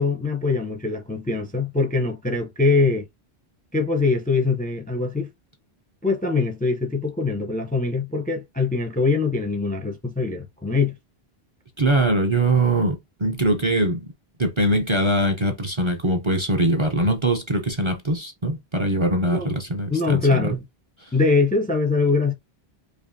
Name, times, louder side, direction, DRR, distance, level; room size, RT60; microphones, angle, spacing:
voice 1, 0.0-3.0 3.7-5.3 6.0-10.9 19.2-19.5 19.9-20.6 21.1-22.3, left 4 dB, 10° left, 0.4 m, -23 dB
voice 2, 11.8-14.0 14.4-20.6, right 1 dB, 35° right, 0.5 m, -22 dB
4.9 x 2.6 x 2.6 m
omnidirectional pair, 1.1 m